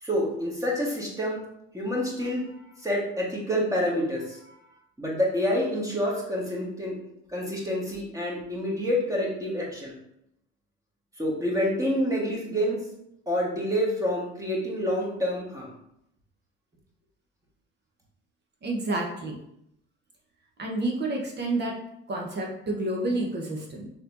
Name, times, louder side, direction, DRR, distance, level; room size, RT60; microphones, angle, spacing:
voice 1, 0.0-1.4 1.7-2.4 2.8-4.5 5.0-6.9 7.3-9.9 11.2-12.8 13.3-15.7, equal, 10° right, -3 dB, 1.6 m, -27 dB
voice 2, 18.6-19.4 20.6-21.8 22.1-23.9, right 2 dB, 30° right, -1 dB, 1.1 m, -29 dB
6.3 x 3.1 x 2.7 m, 0.77 s
figure-of-eight pair, 60°, 34 cm